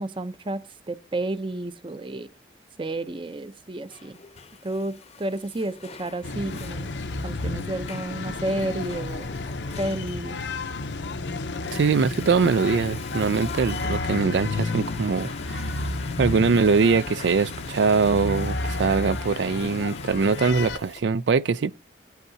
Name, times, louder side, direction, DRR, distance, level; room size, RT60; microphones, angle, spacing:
voice 1, 0.0-2.3 2.8-4.2 4.6-6.9 7.2-9.3 9.8-10.4, right 1 dB, 30° right, 0.6 m, -31 dB
Water / Toilet flush, 3.5-21.0, left 6 dB, 35° left, 0.7 m, -45 dB
sound 1, 6.2-20.8, left 3 dB, 85° left, 0.7 m, -31 dB
voice 2, 11.7-15.7 16.2-21.7, right 5 dB, 80° right, 0.4 m, -22 dB
18.0 x 8.2 x 2.7 m
head